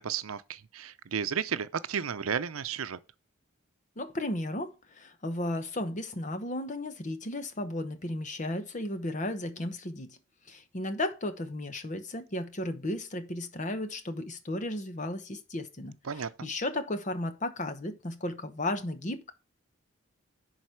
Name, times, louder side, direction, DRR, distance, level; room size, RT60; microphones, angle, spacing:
voice 1, 0.0-3.0 16.0-16.5, right 7 dB, 85° right, 0.6 m, -33 dB
voice 2, 4.0-10.2 10.5-19.3, left 1 dB, 35° left, 1.0 m, -34 dB
11.0 x 4.1 x 4.6 m
head